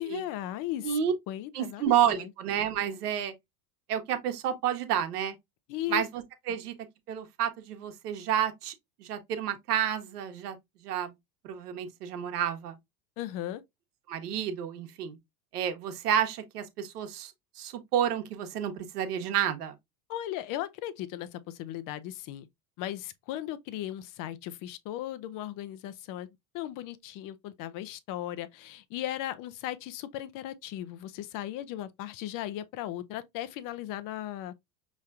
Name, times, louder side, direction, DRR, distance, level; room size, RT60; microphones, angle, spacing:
voice 1, 0.0-0.9 1.3-2.3 5.7-6.0 13.2-13.6 20.1-22.5 22.8-26.3 26.5-34.5, left 13 dB, 45° left, 0.7 m, -37 dB
voice 2, 1.5-3.3 3.9-5.3 5.9-6.7 7.1-8.7 9.0-10.6 10.8-11.1 11.4-12.8 14.1-15.2 15.5-19.7, right 9 dB, 80° right, 1.2 m, -30 dB
5.4 x 3.1 x 2.4 m
hypercardioid pair, 100°, 45 cm